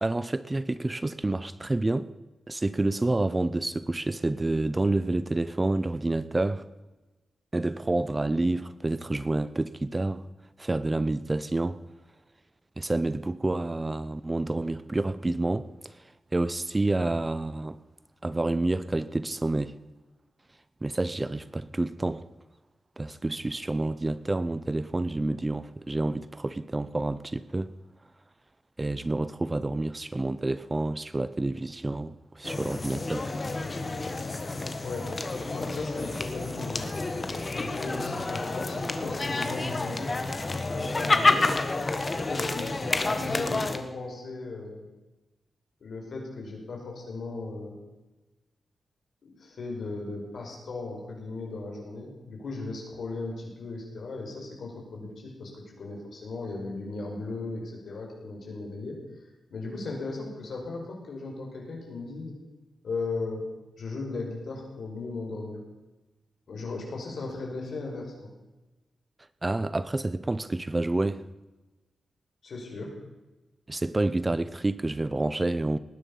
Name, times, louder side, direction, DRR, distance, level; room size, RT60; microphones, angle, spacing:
voice 1, 0.0-2.1 2.5-6.6 7.5-10.3 10.6-11.8 12.8-16.0 16.3-17.8 18.2-19.7 20.8-22.2 23.0-27.7 28.8-33.3 69.4-71.2 73.7-75.8, right 2 dB, 20° right, 0.6 m, -28 dB
sound 1, 32.4-43.8, left 3 dB, 30° left, 1.4 m, -29 dB
voice 2, 34.8-36.9 37.5-40.2 40.7-41.6 42.1-44.9 45.8-47.8 49.2-59.0 59.5-62.4 62.8-63.5 63.8-65.6 66.5-68.3 72.4-72.9, left 3 dB, 65° left, 5.3 m, -37 dB
19.5 x 10.0 x 5.6 m
wide cardioid pair, 130°, 0 cm